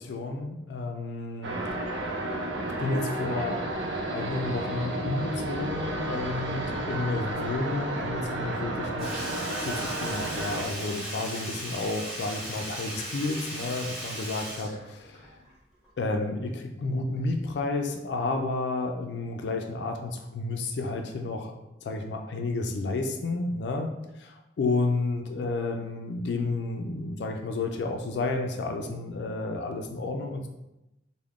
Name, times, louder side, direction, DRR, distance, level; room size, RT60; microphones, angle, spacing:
voice 1, 0.0-1.6 2.8-3.6 4.1-9.3 9.6-15.2 16.0-21.5 21.8-23.9 24.2-30.5, left 3 dB, 70° left, 4 dB, 0.4 m, -31 dB
sound 1, 1.4-10.7, right 1 dB, 90° right, 0.5 m, -32 dB
Sink (filling or washing), 9.0-15.5 15.8-15.9, equal, 5° right, 1.0 m, -37 dB
3.5 x 2.1 x 3.5 m, 0.91 s
head